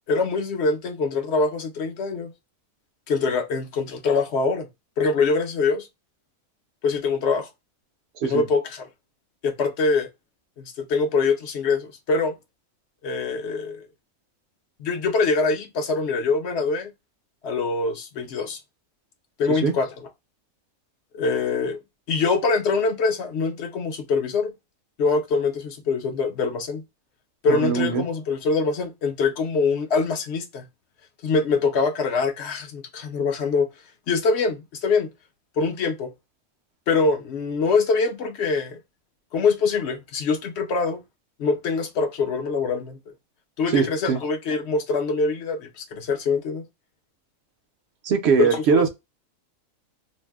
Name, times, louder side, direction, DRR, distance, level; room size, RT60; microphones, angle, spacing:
voice 1, 0.1-2.3 3.1-4.7 5.0-5.9 6.8-7.5 8.2-8.9 9.4-10.1 10.6-12.3 13.0-13.9 14.8-16.9 17.4-18.6 19.4-20.1 21.1-21.8 22.1-24.5 25.0-26.8 27.4-30.7 31.2-33.7 34.1-35.1 35.6-36.1 36.9-38.8 39.3-41.0 41.4-43.0 43.6-46.6 48.4-48.8, left 4 dB, 60° left, 0.8 m, -24 dB
voice 2, 27.5-28.0 43.7-44.2 48.0-48.9, right 6 dB, 60° right, 0.8 m, -21 dB
2.6 x 2.1 x 3.3 m
omnidirectional pair, 1.4 m